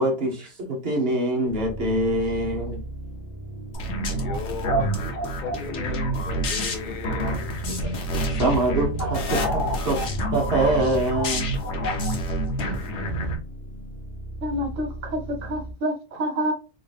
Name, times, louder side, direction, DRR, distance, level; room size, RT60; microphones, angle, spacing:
voice 1, 0.0-2.8 7.0-7.4 7.8-8.0 8.4-10.1 10.3-11.5, right 1 dB, 50° right, 1.2 m, -24 dB
sound 1, 1.5-15.7, right 1 dB, 85° left, 1.4 m, -37 dB
sound 2, 3.7-13.4, right 1 dB, 65° left, 1.1 m, -27 dB
voice 2, 4.1-7.4 7.7-7.8, left 4 dB, 45° left, 0.7 m, -36 dB
voice 3, 14.4-16.5, equal, 85° right, 1.3 m, -28 dB
3.9 x 2.5 x 3.2 m
omnidirectional pair, 1.3 m